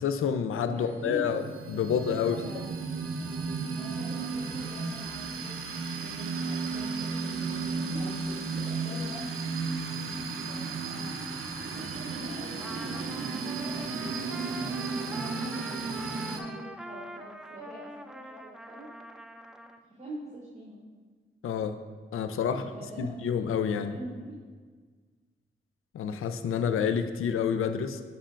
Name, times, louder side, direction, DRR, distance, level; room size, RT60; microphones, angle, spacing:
voice 1, 0.0-1.4 1.7-2.4 21.4-21.8 22.1-24.0 25.9-28.0, left 7 dB, 80° left, 9 dB, 0.4 m, -28 dB
sound 1, 0.6-16.4, right 4 dB, 80° right, 0.6 m, -34 dB
voice 2, 0.7-1.3 2.2-2.7 3.7-9.4 10.2-11.1 11.7-14.8 15.1-18.9 20.0-20.8 22.3-23.1 23.7-24.4, right 1 dB, 30° right, -7 dB, 1.4 m, -44 dB
Trumpet, 12.6-19.8, equal, 5° right, 0.3 m, -43 dB
7.4 x 5.5 x 2.5 m, 1.5 s
cardioid pair, 65°, 21 cm